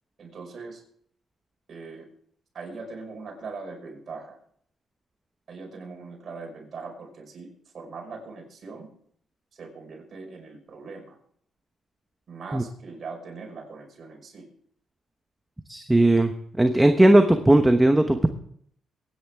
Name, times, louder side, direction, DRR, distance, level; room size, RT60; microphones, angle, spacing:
voice 1, 0.2-0.8 1.7-2.1 2.5-4.4 5.5-7.5 7.7-8.9 9.5-11.2 12.3-14.5, right 4 dB, 55° right, 1 dB, 5.3 m, -40 dB
voice 2, 15.7-16.3 16.6-18.3, right 1 dB, 10° right, 7 dB, 1.0 m, -17 dB
22.5 x 10.0 x 3.6 m, 0.64 s
cardioid pair, 75°, 0 cm